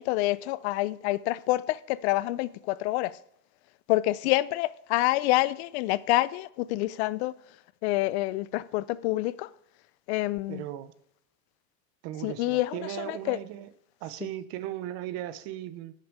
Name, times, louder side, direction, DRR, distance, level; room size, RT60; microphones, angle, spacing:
voice 1, 0.0-3.2 3.9-7.3 7.8-9.5 10.1-10.6 12.2-13.4, left 17 dB, 60° left, 0.5 m, -27 dB
voice 2, 10.5-10.9 12.0-13.7 14.0-15.9, right 13 dB, 40° right, 0.7 m, -37 dB
13.0 x 6.7 x 4.7 m
cardioid pair, 170°, 38 cm